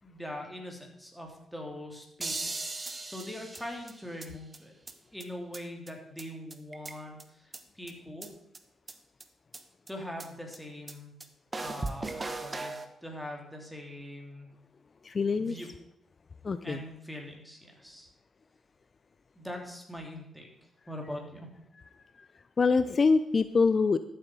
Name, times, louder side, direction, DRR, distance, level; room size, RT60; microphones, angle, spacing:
voice 1, 0.0-2.6 3.1-4.7 5.1-8.3 9.9-11.1 11.6-14.5 15.4-15.7 16.6-18.1 19.4-20.5 20.9-21.5, left 1 dB, ahead, 1 dB, 3.2 m, -42 dB
sound 1, 2.2-4.3 4.5-4.6 4.9-5.0 5.2-5.3 5.5-5.6 5.9-6.0 6.2-6.3 6.5-7.2 7.5-7.6 7.9-8.0 8.2-8.3 8.5-8.6 8.9-9.0 9.2-9.3 9.5-9.6 9.9-10.0 10.2-10.3 10.5-10.6 10.9-11.0 11.2-11.3 11.5-12.9, right 3 dB, 30° right, 1.2 m, -37 dB
voice 2, 15.0-15.6 16.4-16.8 22.2-22.3 22.6-24.0, left 4 dB, 45° left, 12 dB, 0.4 m, -25 dB
13.0 x 7.8 x 4.7 m, 0.82 s
cardioid pair, 65°, 0 cm